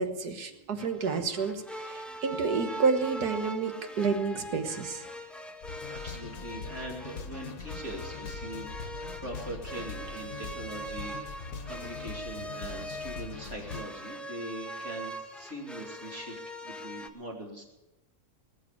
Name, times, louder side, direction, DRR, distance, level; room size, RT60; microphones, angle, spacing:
voice 1, 0.0-5.0, right 5 dB, 85° right, 7 dB, 1.9 m, -30 dB
sound 1, 0.8-17.1, equal, ahead, 0.6 m, -42 dB
sound 2, 5.6-13.9, left 5 dB, 65° left, 1.4 m, -42 dB
voice 2, 5.9-11.4 11.6-17.6, right 1 dB, 50° right, -1 dB, 3.2 m, -42 dB
19.5 x 7.5 x 8.5 m, 0.99 s
omnidirectional pair, 1.6 m